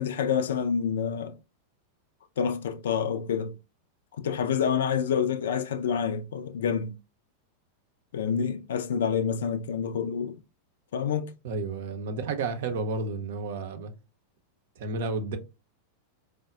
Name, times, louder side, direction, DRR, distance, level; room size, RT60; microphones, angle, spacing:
voice 1, 0.0-1.4 2.4-3.5 4.2-7.0 8.1-10.4 10.9-11.3, left 7 dB, 60° left, 0.4 m, -27 dB
voice 2, 11.4-13.9 14.8-15.4, right 3 dB, 55° right, 0.6 m, -31 dB
4.6 x 2.1 x 2.3 m
figure-of-eight pair, 90°, 0 cm